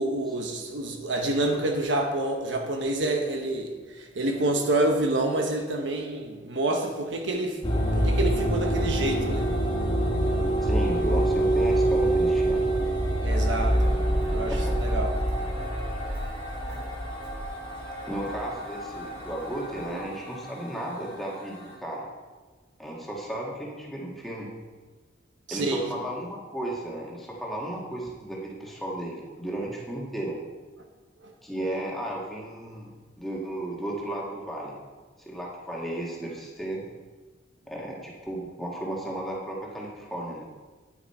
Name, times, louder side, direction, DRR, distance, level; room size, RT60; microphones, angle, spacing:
voice 1, 0.0-7.6 7.9-9.5 13.2-14.0 14.3-15.1 25.5-25.9, right 2 dB, 70° right, 3 dB, 1.1 m, -28 dB
sound 1, 7.6-21.7, right 1 dB, 25° left, 1.9 m, -26 dB
voice 2, 10.6-12.6 14.5-14.7 16.6-16.8 18.1-22.0 22.8-24.5 25.5-30.4 31.4-34.7 35.2-36.8 37.7-40.4, right 1 dB, ahead, -4 dB, 1.7 m, -34 dB
Walk footsteps, 13.3-20.0, equal, 25° right, 2.1 m, -42 dB
9.6 x 9.3 x 4.3 m, 1.3 s
head